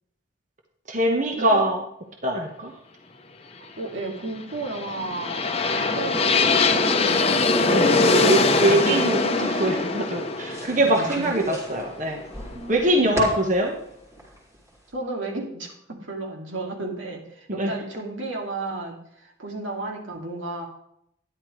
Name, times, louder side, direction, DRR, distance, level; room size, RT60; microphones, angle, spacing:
voice 1, 0.9-1.8 2.2-2.7 7.7-12.2 12.7-13.7 17.5-17.7, right 1 dB, 40° right, 2 dB, 1.3 m, -23 dB
voice 2, 3.6-7.2 10.8-11.6 12.5-13.1 14.9-20.7, right 2 dB, 85° right, 1 dB, 2.4 m, -33 dB
sound 1, 4.5-12.5, left 3 dB, 30° left, 0.8 m, -22 dB
sound 2, 7.5-14.9, right 1 dB, 15° right, 3.4 m, -40 dB
12.5 x 10.5 x 3.2 m, 0.73 s
head